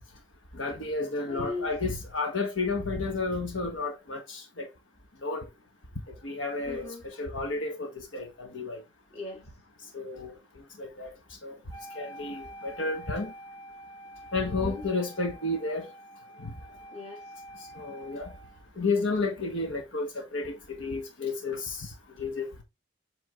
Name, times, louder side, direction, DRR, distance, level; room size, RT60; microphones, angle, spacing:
voice 1, 0.5-4.7 5.2-5.5 6.2-8.8 9.9-10.4 10.8-11.1 11.4-11.6 11.9-13.3 14.3-15.9 16.4-16.6 17.6-18.3 18.8-22.6, left 3 dB, 75° left, 1.4 m, -32 dB
voice 2, 1.3-1.7 6.7-7.0 9.1-9.5 14.4-14.8 16.9-17.2, left 3 dB, 35° left, 2.6 m, -38 dB
Wind instrument woodwind instrument, 11.7-18.7, equal, 15° left, 2.8 m, -47 dB
8.0 x 3.7 x 3.6 m
head